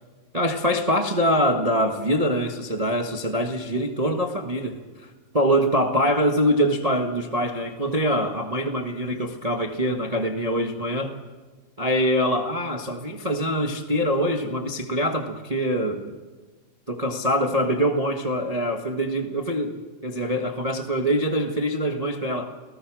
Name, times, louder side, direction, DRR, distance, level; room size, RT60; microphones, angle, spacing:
voice 1, 0.3-5.1 5.3-11.1 11.8-16.1 16.9-22.5, equal, 25° right, 3 dB, 0.8 m, -24 dB
29.0 x 19.0 x 6.4 m, 1.3 s
omnidirectional pair, 3.5 m